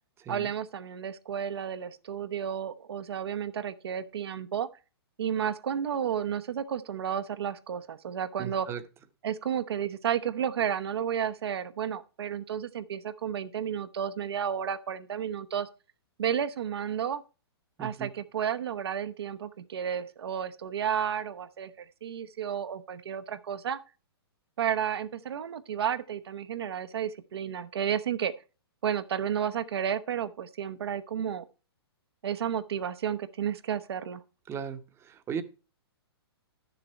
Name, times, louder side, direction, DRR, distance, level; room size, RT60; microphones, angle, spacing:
voice 1, 0.3-4.7 5.2-8.7 9.2-15.7 16.2-17.2 17.8-23.8 24.6-28.3 28.8-31.5 32.2-34.2, right 8 dB, 70° right, 0.9 m, -32 dB
voice 2, 8.4-8.8 17.8-18.1 34.5-35.4, right 7 dB, 20° right, 0.9 m, -36 dB
11.0 x 6.8 x 4.4 m
hypercardioid pair, 125°, 14 cm